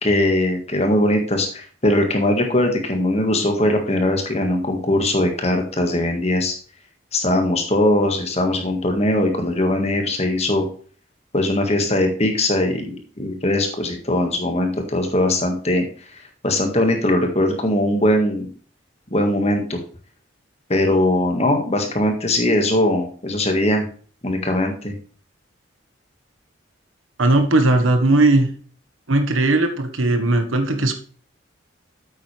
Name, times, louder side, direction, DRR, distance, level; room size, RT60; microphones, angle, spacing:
voice 1, 0.0-6.5 7.1-10.7 11.3-15.8 16.1-18.5 19.1-19.8 20.7-23.8 24.2-24.9, left 1 dB, 35° left, 4 dB, 1.7 m, -20 dB
voice 2, 27.2-28.5 29.1-30.9, right 2 dB, 90° right, 6 dB, 1.4 m, -17 dB
8.9 x 8.1 x 3.3 m, 0.42 s
head